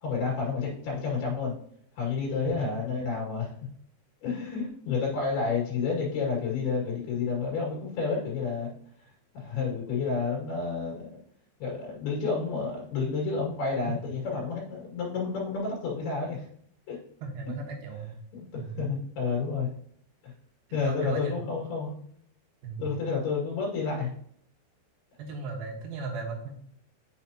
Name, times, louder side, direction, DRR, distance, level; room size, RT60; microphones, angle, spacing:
voice 1, 0.0-1.6 2.0-3.5 4.2-8.7 9.3-11.2 11.6-16.5 16.9-17.0 18.3-19.7 20.7-21.9 22.8-24.1, left 5 dB, 65° left, -3 dB, 4.0 m, -30 dB
voice 2, 17.2-18.1 18.6-18.8 20.8-21.4 22.6-22.9 25.2-26.5, right 4 dB, 65° right, 1 dB, 2.9 m, -36 dB
8.2 x 6.6 x 2.9 m, 0.64 s
omnidirectional pair, 4.9 m